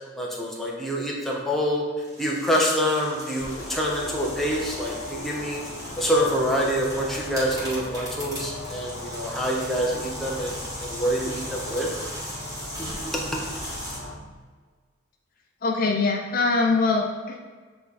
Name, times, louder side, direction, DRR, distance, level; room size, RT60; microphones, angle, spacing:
voice 1, 0.2-1.8 2.2-5.6 6.0-10.5 10.8-11.9 12.8-13.4, equal, ahead, -4 dB, 1.0 m, -26 dB
sound 1, 2.0-14.0, equal, 20° right, 1.8 m, -38 dB
sound 2, 3.5-14.2, left 2 dB, 85° left, 0.9 m, -38 dB
voice 2, 15.6-17.5, left 3 dB, 45° left, 1 dB, 0.5 m, -23 dB
7.7 x 3.3 x 4.0 m, 1.5 s
head